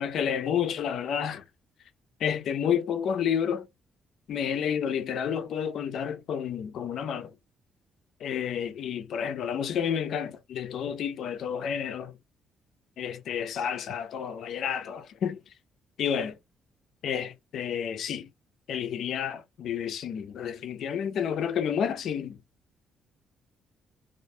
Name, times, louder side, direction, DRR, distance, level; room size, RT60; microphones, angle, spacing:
voice 1, 0.0-1.4 2.2-3.7 4.3-7.3 8.2-12.1 13.0-15.4 16.0-16.4 17.0-18.3 18.7-22.4, left 8 dB, 70° left, 0.4 m, -30 dB
2.4 x 2.1 x 2.6 m
cardioid pair, 90°, 0 cm